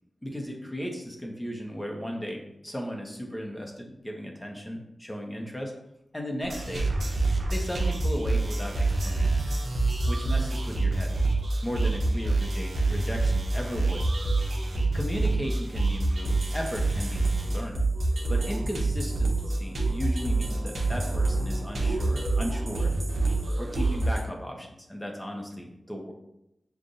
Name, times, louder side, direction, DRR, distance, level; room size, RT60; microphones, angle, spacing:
voice 1, 0.2-5.7 6.1-6.9 7.5-9.5 10.0-11.1 11.6-14.0 14.9-17.8 18.3-22.9 23.6-26.1, equal, 15° left, 1 dB, 0.9 m, -36 dB
sound 1, 6.4-24.2, right 2 dB, 70° right, 0.8 m, -26 dB
6.5 x 2.5 x 2.7 m, 0.83 s
cardioid pair, 55°, 0 cm